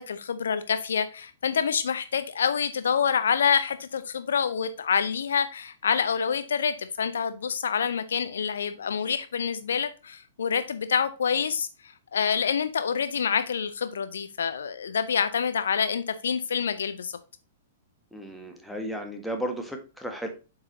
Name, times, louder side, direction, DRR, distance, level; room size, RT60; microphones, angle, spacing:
voice 1, 0.0-17.2, left 7 dB, 65° left, 0.6 m, -27 dB
voice 2, 18.1-20.3, equal, ahead, 1.6 m, -34 dB
7.9 x 5.5 x 2.8 m
figure-of-eight pair, 105°, 0 cm